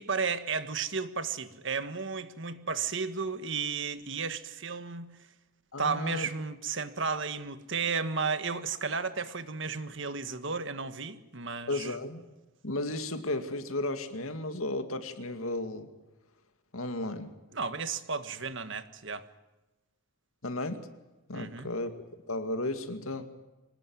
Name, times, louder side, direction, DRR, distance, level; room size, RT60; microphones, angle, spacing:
voice 1, 0.0-5.1 5.8-11.9 17.5-19.2 21.3-21.7, right 5 dB, 55° right, 11 dB, 1.6 m, -33 dB
voice 2, 5.7-6.3 11.7-12.2 12.6-15.9 16.7-17.3 20.4-20.9 21.3-21.9 22.3-23.3, left 2 dB, 75° left, 8 dB, 2.3 m, -34 dB
26.0 x 19.0 x 9.5 m, 1.1 s
head